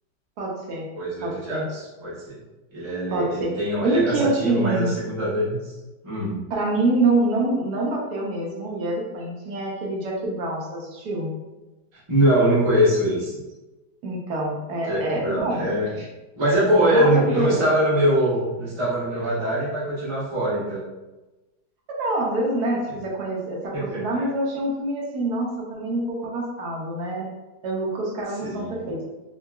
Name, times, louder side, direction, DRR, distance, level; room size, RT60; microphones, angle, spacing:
voice 1, 0.4-0.9 1.2-1.7 3.1-3.5 3.8-4.9 6.5-11.3 14.0-15.7 16.8-17.6 21.9-27.2 27.6-29.0, right 2 dB, 70° right, -3 dB, 1.1 m, -26 dB
voice 2, 0.9-2.4 2.7-5.7 6.0-6.4 12.1-13.3 14.8-16.1 16.3-20.8 23.7-24.3 28.4-28.7, right 1 dB, 35° right, -9 dB, 0.4 m, -23 dB
3.6 x 2.2 x 2.3 m, 1.1 s
omnidirectional pair, 1.9 m